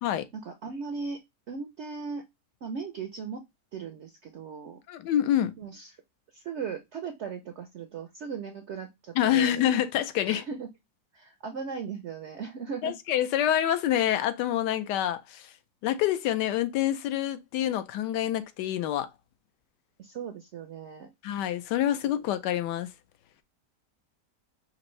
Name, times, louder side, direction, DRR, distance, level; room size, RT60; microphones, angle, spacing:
voice 1, 0.3-1.2 1.5-2.2 2.6-3.4 3.7-4.8 5.6-6.0 6.3-9.6 10.2-10.7 11.1-12.9 20.0-21.1, right 5 dB, 70° right, 0.6 m, -37 dB
voice 2, 4.9-5.5 9.2-10.4 12.8-15.5 15.8-19.1 21.2-22.9, left 11 dB, 90° left, 1.2 m, -27 dB
5.3 x 2.6 x 3.0 m
omnidirectional pair, 1.8 m